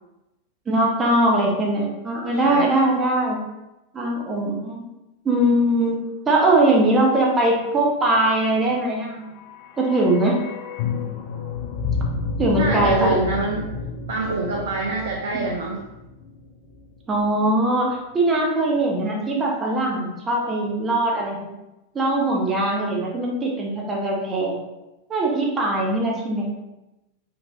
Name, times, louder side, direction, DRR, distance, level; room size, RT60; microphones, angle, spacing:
voice 1, 0.7-3.4 3.9-4.9 5.2-9.2 9.8-10.4 12.4-13.2 15.3-15.5 17.1-21.5 21.9-24.6 25.1-26.5, right 1 dB, 20° right, -1 dB, 0.7 m, -21 dB
voice 2, 2.4-2.9 12.6-13.7 14.1-15.9, right 3 dB, 60° right, -1 dB, 0.4 m, -26 dB
sound 1, 9.1-17.2 17.5-17.6, left 4 dB, 55° left, 0.3 m, -31 dB
3.3 x 2.4 x 2.4 m, 0.98 s
figure-of-eight pair, 90°, 0 cm